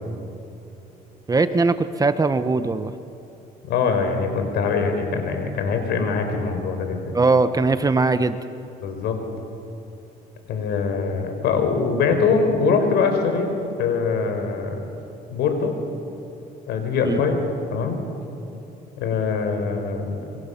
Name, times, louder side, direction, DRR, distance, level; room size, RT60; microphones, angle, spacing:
voice 1, 1.3-2.9 7.1-8.4 17.0-17.2, right 3 dB, 20° right, 11 dB, 1.0 m, -20 dB
voice 2, 3.7-7.1 8.8-9.2 10.5-13.5 13.8-14.7 15.3-15.8 16.7-17.4 17.7-18.0 19.0-20.4, left 5 dB, 80° left, 5 dB, 4.6 m, -23 dB
26.0 x 23.5 x 7.1 m, 3.0 s
cardioid pair, 110°, 17 cm